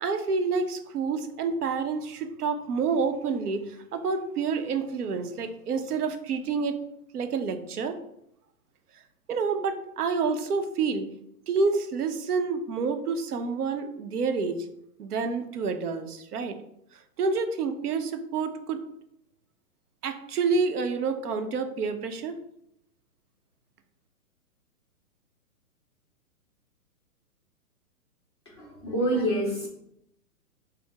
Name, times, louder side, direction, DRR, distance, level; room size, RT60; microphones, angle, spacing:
voice 1, 0.0-6.8 7.1-7.9 9.3-11.1 11.5-14.6 15.0-16.6 17.2-18.8 20.0-22.4, right 4 dB, 85° right, 7 dB, 0.8 m, -28 dB
voice 2, 28.5-29.7, right 1 dB, 20° left, -7 dB, 0.6 m, -27 dB
4.5 x 2.1 x 4.6 m, 0.77 s
hypercardioid pair, 180°, 45 cm